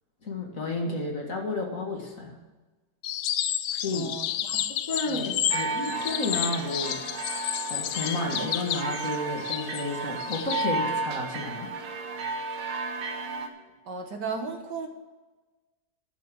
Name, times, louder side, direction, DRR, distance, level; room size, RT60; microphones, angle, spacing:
voice 1, 0.2-2.4 3.7-4.1 4.9-7.0 7.7-11.7, left 2 dB, 45° left, 1 dB, 2.1 m, -31 dB
sound 1, 3.0-10.7, left 11 dB, 70° left, 1.0 m, -31 dB
voice 2, 3.9-4.6 5.1-5.3 13.9-14.9, right 5 dB, 60° right, 4 dB, 1.8 m, -35 dB
sound 2, 5.5-13.5, right 3 dB, 85° right, 2.1 m, -33 dB
11.5 x 6.7 x 7.5 m, 1.2 s
omnidirectional pair, 2.2 m